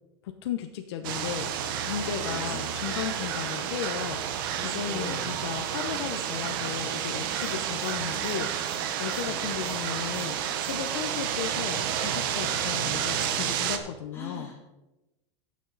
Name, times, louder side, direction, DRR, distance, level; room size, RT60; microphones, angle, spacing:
voice 1, 0.2-4.2 4.6-14.5, left 9 dB, 65° left, 5 dB, 0.9 m, -35 dB
sound 1, 1.0-13.8, right 9 dB, 50° right, 0.9 m, -30 dB
voice 2, 2.1-2.6 4.9-5.3 9.1-9.5 14.1-14.7, left 3 dB, 15° left, -3 dB, 2.3 m, -41 dB
16.5 x 6.5 x 4.0 m, 1.0 s
supercardioid pair, 175°, 14 cm